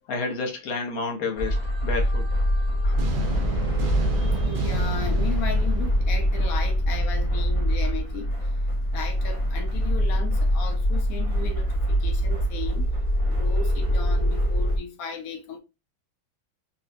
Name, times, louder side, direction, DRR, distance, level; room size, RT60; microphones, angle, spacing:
voice 1, 0.1-2.3 2.8-3.0, left 4 dB, 55° left, 1.2 m, -30 dB
sound 1, 1.4-14.8, equal, 30° left, 0.6 m, -24 dB
sound 2, 3.0-7.0, right 2 dB, 90° right, 1.6 m, -31 dB
voice 2, 4.0-8.5 8.9-12.9 13.3-15.6, left 4 dB, 75° left, 0.8 m, -36 dB
4.2 x 2.3 x 2.5 m
omnidirectional pair, 2.1 m